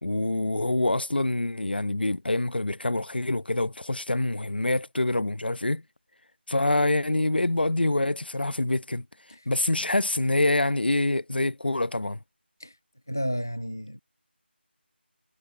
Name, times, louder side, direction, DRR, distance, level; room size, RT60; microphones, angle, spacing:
voice 1, 0.0-5.8 6.5-9.0 9.5-12.2, left 2 dB, 60° left, 0.8 m, -26 dB
voice 2, 13.1-14.0, equal, 15° left, 0.4 m, -32 dB
figure-of-eight pair, 180°, 6 cm